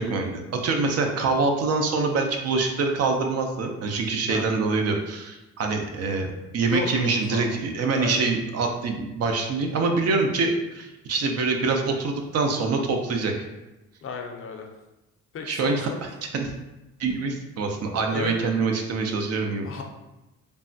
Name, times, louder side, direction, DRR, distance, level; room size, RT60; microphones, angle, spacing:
voice 1, 0.0-6.3 6.5-13.3 15.5-15.9 16.3-16.5 17.0-19.7, right 4 dB, 55° right, 3 dB, 0.5 m, -25 dB
voice 2, 6.6-7.5 7.9-8.2 14.0-14.7 15.3-16.0 18.0-18.4 19.6-19.8, left 5 dB, 45° left, 2 dB, 0.5 m, -33 dB
3.3 x 2.1 x 2.6 m, 1.0 s
cardioid pair, 90°, 30 cm